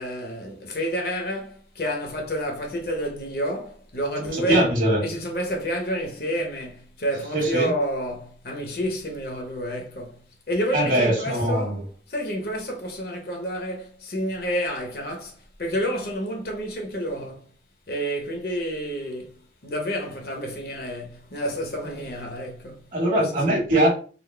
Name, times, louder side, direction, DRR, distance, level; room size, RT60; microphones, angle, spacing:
voice 1, 0.0-4.6 5.0-17.5 17.9-19.3 19.6-22.9 23.2-23.6, equal, 55° left, 0.8 m, -29 dB
voice 2, 4.3-5.0 7.3-7.7 10.7-11.8 22.9-23.9, right 1 dB, 50° right, 1.5 m, -21 dB
3.9 x 2.0 x 3.2 m
head